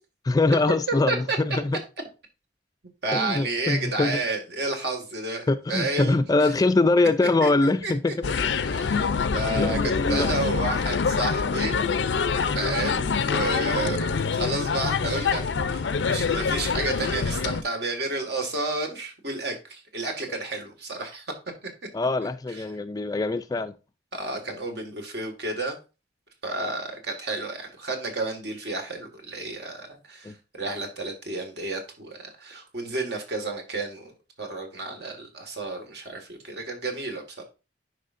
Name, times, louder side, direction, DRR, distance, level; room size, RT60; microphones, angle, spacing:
voice 1, 0.3-1.8 3.1-4.2 5.5-8.1 9.6-10.3 21.9-23.7 30.2-30.3, left 2 dB, 20° left, 0.3 m, -23 dB
voice 2, 3.0-6.5 7.4-8.1 8.6-11.8 12.5-21.3 21.6-21.7 22.5-22.6 24.1-25.8 26.4-34.1 34.4-37.4, right 2 dB, 65° right, 1.7 m, -31 dB
sound 1, 8.2-17.6, left 5 dB, 85° left, 0.5 m, -25 dB
9.9 x 4.8 x 2.5 m
head